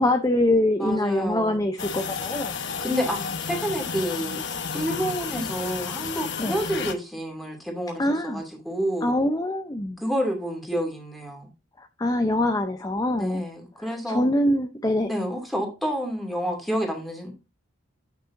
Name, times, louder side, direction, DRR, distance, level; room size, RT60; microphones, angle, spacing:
voice 1, 0.0-2.6 6.4-6.6 8.0-8.4 9.0-10.0 12.0-13.4 13.8-15.1, left 1 dB, 20° left, 0.6 m, -24 dB
voice 2, 0.8-1.6 2.8-4.4 4.7-9.1 10.0-11.5 13.2-14.3 15.1-17.3, equal, ahead, 2.5 m, -29 dB
sound 1, 1.8-6.9, left 6 dB, 60° left, 1.0 m, -32 dB
8.7 x 6.0 x 2.6 m
head